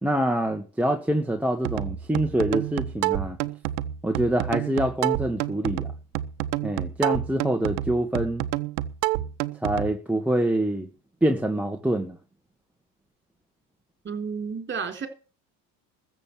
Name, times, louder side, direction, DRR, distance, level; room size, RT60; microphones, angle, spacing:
voice 1, 0.0-3.4 4.0-5.9 6.6-8.4 9.6-10.9 11.2-12.2, right 1 dB, 5° right, 1.6 m, -25 dB
sound 1, 1.6-9.9, right 14 dB, 80° right, 1.1 m, -29 dB
voice 2, 14.0-15.1, right 6 dB, 25° right, 3.9 m, -31 dB
14.0 x 7.6 x 8.6 m
hypercardioid pair, 90°, 49 cm